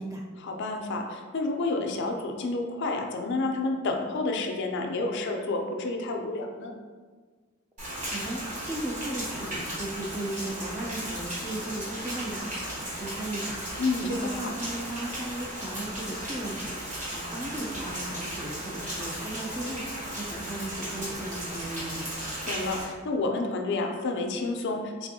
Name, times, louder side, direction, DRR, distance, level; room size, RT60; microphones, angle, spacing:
voice 1, 0.4-6.7 13.8-14.5 22.5-25.1, left 2 dB, 55° left, 3 dB, 0.4 m, -30 dB
voice 2, 7.8-22.1, right 1 dB, 15° right, -1 dB, 0.4 m, -36 dB
Rain, 7.8-22.8, right 1 dB, 35° right, 1.1 m, -36 dB
3.4 x 3.4 x 2.6 m, 1.5 s
head